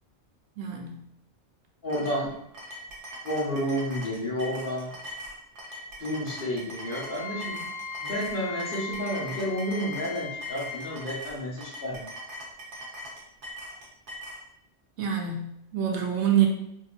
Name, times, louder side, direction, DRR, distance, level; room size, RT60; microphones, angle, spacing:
voice 1, 0.6-1.0 15.0-16.5, right 9 dB, 80° right, 2 dB, 0.9 m, -26 dB
voice 2, 1.8-2.3 3.2-4.9 6.0-7.6 8.0-12.0, equal, 55° left, -4 dB, 1.1 m, -31 dB
sound 1, 1.9-14.4, equal, 55° right, 0.9 m, -41 dB
Wind instrument woodwind instrument, 6.8-11.0, left 5 dB, 30° left, 1.3 m, -38 dB
3.7 x 2.7 x 2.4 m, 0.78 s
omnidirectional pair, 1.2 m